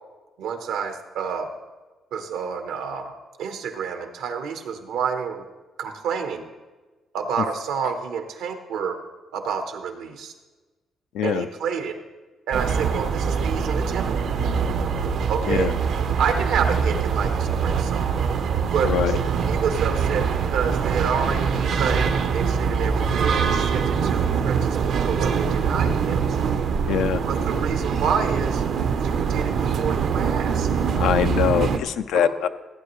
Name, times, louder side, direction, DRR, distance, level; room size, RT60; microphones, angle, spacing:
voice 1, 0.4-1.5 2.1-3.1 3.4-5.5 5.8-6.5 7.1-9.0 9.3-10.3 11.2-12.0 12.5-14.2 15.3-15.7 16.2-18.1 18.4-18.9 19.5-26.2 27.3-28.6 29.0-30.7 32.2-32.3, right 6 dB, 85° right, 6 dB, 1.1 m, -29 dB
voice 2, 11.1-11.5 15.5-15.7 18.8-19.1 26.9-27.2 31.0-32.5, left 9 dB, 85° left, 10 dB, 0.4 m, -23 dB
sound 1, 12.5-31.8, right 6 dB, 70° right, 0.7 m, -23 dB
15.0 x 9.0 x 3.1 m, 1.2 s
cardioid pair, 90°, 0 cm